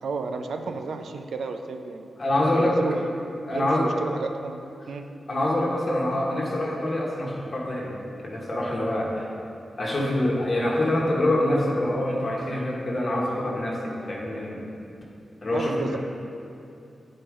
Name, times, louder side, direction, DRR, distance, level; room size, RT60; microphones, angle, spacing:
voice 1, 0.0-2.1 2.5-3.1 3.5-4.6 4.9-5.0 15.5-16.0, right 4 dB, 85° right, 6 dB, 0.5 m, -32 dB
voice 2, 2.2-2.8 3.5-3.9 5.3-9.3 9.8-14.6 15.4-16.0, left 1 dB, 35° left, -4 dB, 1.4 m, -25 dB
10.0 x 4.4 x 4.9 m, 2.7 s
wide cardioid pair, 155°, 0 cm